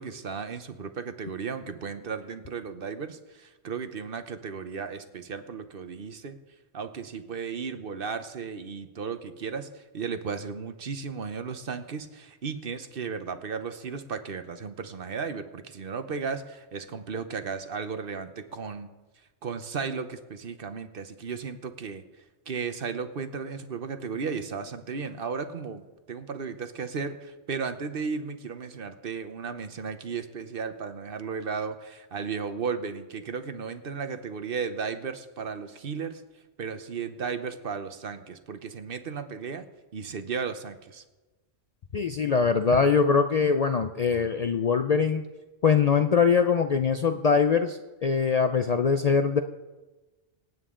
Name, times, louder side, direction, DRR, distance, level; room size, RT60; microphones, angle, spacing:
voice 1, 0.0-6.4 6.7-18.9 19.4-22.0 22.5-25.8 26.1-36.2 36.6-39.7 39.9-41.0, right 5 dB, 55° right, 9 dB, 1.0 m, -35 dB
voice 2, 41.9-45.2 45.6-49.4, left 5 dB, 50° left, 8 dB, 0.5 m, -23 dB
26.0 x 9.0 x 3.8 m, 1.2 s
omnidirectional pair, 1.1 m